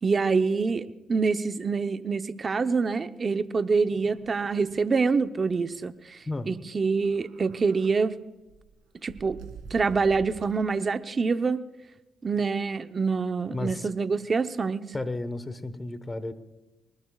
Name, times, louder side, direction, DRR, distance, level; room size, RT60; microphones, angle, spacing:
voice 1, 0.0-6.2 6.5-8.2 9.0-9.4 9.7-11.6 12.2-14.8, right 4 dB, 35° right, 9 dB, 0.8 m, -26 dB
sound 1, 3.8-4.8 5.1-5.2 5.5-5.7 6.9-8.0 8.5-10.8, right 6 dB, 90° right, 2.4 m, -47 dB
voice 2, 13.5-13.9 14.9-16.3, left 2 dB, 20° left, 12 dB, 1.2 m, -33 dB
23.0 x 20.5 x 2.4 m, 1.0 s
cardioid pair, 90°, 0 cm